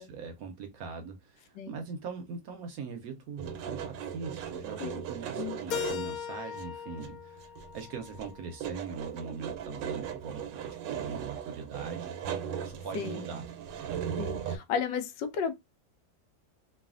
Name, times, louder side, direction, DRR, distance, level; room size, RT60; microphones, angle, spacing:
voice 1, 0.0-4.8 5.1-12.3 12.6-13.4, right 5 dB, 70° right, 0.9 m, -41 dB
sound 1, 3.4-6.2 6.5-6.6 7.0-7.8 8.1-14.6, right 8 dB, 90° right, 1.3 m, -38 dB
Keyboard (musical), 5.7-8.6, left 9 dB, 70° left, 0.8 m, -38 dB
voice 2, 12.9-13.3 14.2-15.5, left 6 dB, 90° left, 1.3 m, -33 dB
3.2 x 2.3 x 2.4 m
omnidirectional pair, 1.9 m